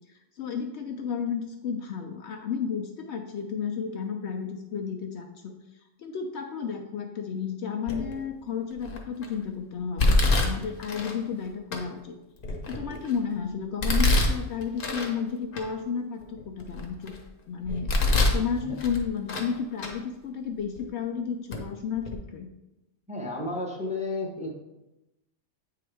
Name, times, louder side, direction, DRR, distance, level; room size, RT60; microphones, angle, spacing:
voice 1, 0.1-5.6 6.0-12.2 12.7-17.2 17.5-17.9 18.3-22.5, left 6 dB, 65° left, 4 dB, 0.8 m, -32 dB
Domestic sounds home sounds, 7.9-8.3 8.8-9.3 10.0-11.2 11.7-11.8 12.4-13.2 13.8-15.1 15.5-15.6 16.2-17.2 17.6-18.4 18.8-19.5 19.8-19.9 20.8-20.9 21.5-21.6 22.0-22.1, left 2 dB, 45° left, 1.0 m, -25 dB
voice 2, 23.1-24.5, left 2 dB, 5° right, -1 dB, 0.9 m, -32 dB
8.6 x 3.8 x 3.4 m, 0.94 s
omnidirectional pair, 1.3 m